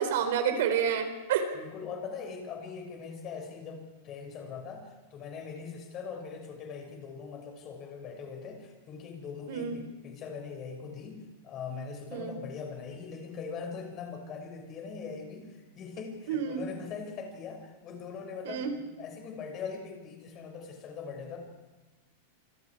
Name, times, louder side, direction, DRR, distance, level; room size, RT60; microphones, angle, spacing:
voice 1, 0.0-1.5 9.5-9.8 12.1-12.4 16.3-16.7 18.5-18.7, right 7 dB, 70° right, 7 dB, 4.1 m, -29 dB
voice 2, 1.5-21.4, left 5 dB, 30° left, 3 dB, 6.2 m, -41 dB
27.5 x 25.5 x 4.9 m, 1.1 s
supercardioid pair, 150°, 0 cm